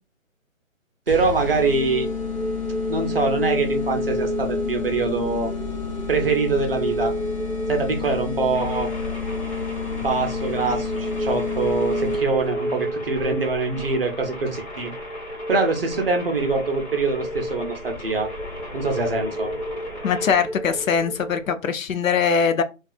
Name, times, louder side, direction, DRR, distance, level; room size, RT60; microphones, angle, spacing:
sound 1, 1.1-12.5, left 7 dB, 30° left, 0.7 m, -31 dB
voice 1, 1.1-2.1 2.9-5.5 6.1-7.2 7.7-8.9 10.0-14.9 15.5-18.3 18.7-19.5, right 4 dB, 45° right, 4 dB, 0.6 m, -24 dB
sound 2, 1.6-21.5, right 1 dB, 5° right, 0.8 m, -31 dB
sound 3, 8.5-20.3, left 1 dB, 50° left, 1.3 m, -39 dB
voice 2, 20.0-22.6, left 6 dB, 70° left, 10 dB, 0.5 m, -21 dB
2.6 x 2.3 x 2.3 m, 0.29 s
figure-of-eight pair, 160°, 41 cm